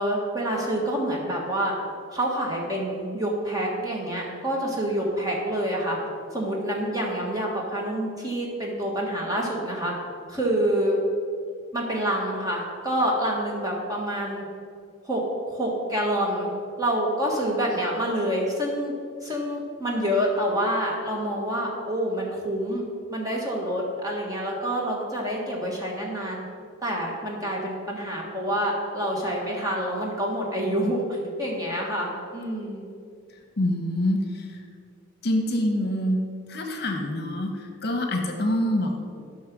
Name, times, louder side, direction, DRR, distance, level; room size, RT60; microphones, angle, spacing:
voice 1, 0.0-1.7 2.1-6.0 6.3-9.9 10.3-11.0 11.7-14.4 15.0-15.2 15.5-16.5 16.8-18.9 19.2-26.4 26.8-32.8, equal, 15° right, -2 dB, 1.6 m, -27 dB
voice 2, 33.6-34.6 35.2-39.0, left 1 dB, 50° left, 3 dB, 1.1 m, -26 dB
11.5 x 5.6 x 6.1 m, 2.3 s
head